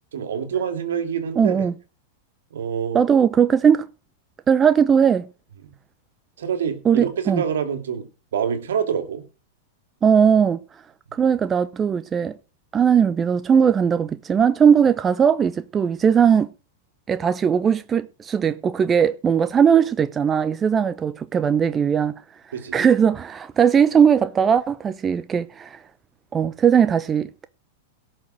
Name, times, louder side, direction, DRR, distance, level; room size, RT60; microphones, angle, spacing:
voice 1, 0.1-1.6 2.5-3.0 5.6-5.7 6.4-8.1 8.3-9.2 22.5-22.9, right 7 dB, 75° right, 2.8 m, -26 dB
voice 2, 1.4-1.7 2.9-3.9 4.5-5.3 6.8-7.4 10.0-10.6 11.1-12.4 12.7-16.5 17.1-22.1 22.7-25.8 26.3-27.5, right 7 dB, 25° right, 0.8 m, -19 dB
17.0 x 6.7 x 6.3 m
hypercardioid pair, 110°, 0 cm